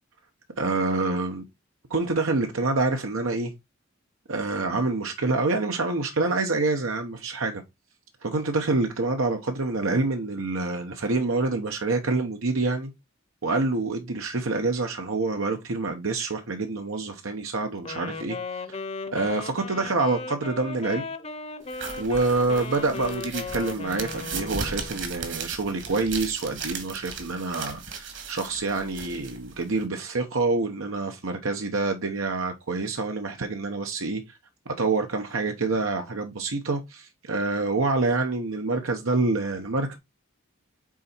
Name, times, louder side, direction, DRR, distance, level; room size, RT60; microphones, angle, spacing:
voice 1, 0.6-1.4 1.9-3.5 4.3-7.6 8.2-12.9 13.4-18.4 18.7-18.8 19.1-21.1 22.0-34.2 34.8-40.0, right 3 dB, 90° right, 1.0 m, -27 dB
Wind instrument woodwind instrument, 17.8-25.0, left 3 dB, 30° left, 0.7 m, -36 dB
sound 1, 21.7-29.9, right 5 dB, 60° right, 1.8 m, -37 dB
6.2 x 4.1 x 4.4 m
head